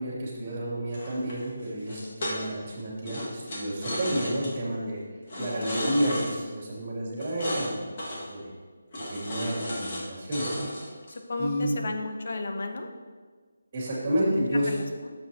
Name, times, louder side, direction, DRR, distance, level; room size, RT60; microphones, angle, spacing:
voice 1, 0.0-5.0 5.4-7.8 8.3-8.5 9.1-10.7 11.4-11.8 13.7-14.7, equal, 30° right, -5 dB, 2.8 m, -30 dB
sound 1, 0.9-2.7 3.0-4.5 5.3-6.3 7.2-7.7 8.0-8.3 8.9-10.0 10.3-11.2, equal, 40° left, 2.0 m, -33 dB
voice 2, 5.4-5.7 11.3-12.9 14.3-14.4 14.7-14.8, left 3 dB, 55° left, 5 dB, 0.9 m, -33 dB
10.5 x 7.5 x 3.0 m, 1.5 s
figure-of-eight pair, 170°, 0 cm